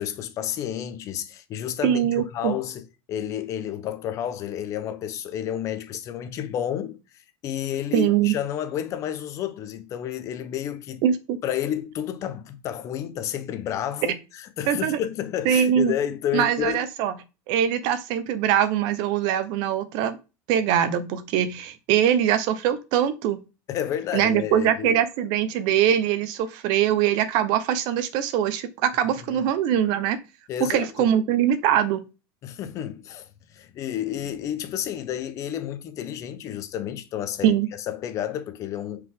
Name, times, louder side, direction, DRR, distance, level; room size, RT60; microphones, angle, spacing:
voice 1, 0.0-7.0 7.4-11.0 11.4-16.8 23.7-25.0 29.2-29.4 30.5-31.1 32.4-39.1, left 10 dB, 40° left, 1.1 m, -31 dB
voice 2, 1.8-2.5 7.9-8.3 11.0-11.4 14.7-15.0 15.4-15.9 16.3-17.1 17.5-20.2 20.5-23.4 24.1-30.2 30.6-32.0 37.4-37.7, right 10 dB, 60° right, 1.2 m, -22 dB
9.3 x 5.0 x 3.9 m
cardioid pair, 155°, 8 cm